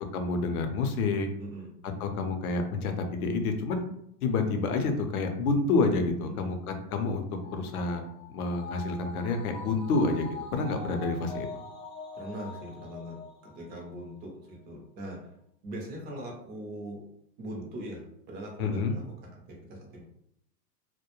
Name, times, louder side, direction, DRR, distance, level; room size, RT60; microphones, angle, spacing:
voice 1, 0.1-1.3 2.0-3.8 4.2-10.3 10.5-11.5 18.6-19.0, left 3 dB, 60° left, 5 dB, 0.6 m, -28 dB
voice 2, 1.4-1.7 6.3-6.5 12.1-15.3 15.6-17.0 17.4-19.0 19.3-20.0, right 1 dB, 20° right, 0 dB, 0.5 m, -41 dB
sound 1, 7.4-14.1 14.4-14.5, left 2 dB, 30° left, 0.8 m, -43 dB
2.3 x 2.1 x 2.9 m, 0.72 s
hypercardioid pair, 115°, 49 cm